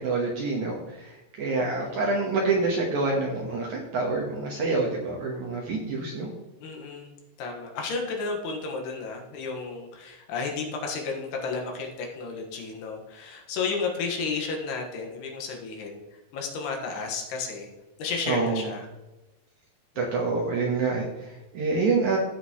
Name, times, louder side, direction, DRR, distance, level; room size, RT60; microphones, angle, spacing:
voice 1, 0.0-6.3 18.3-18.7 20.0-22.2, right 3 dB, 65° right, -2 dB, 2.0 m, -27 dB
voice 2, 1.8-2.1 6.6-17.7 18.0-18.9, left 4 dB, 75° left, 1 dB, 3.4 m, -33 dB
16.0 x 6.0 x 3.1 m, 1.0 s
omnidirectional pair, 4.9 m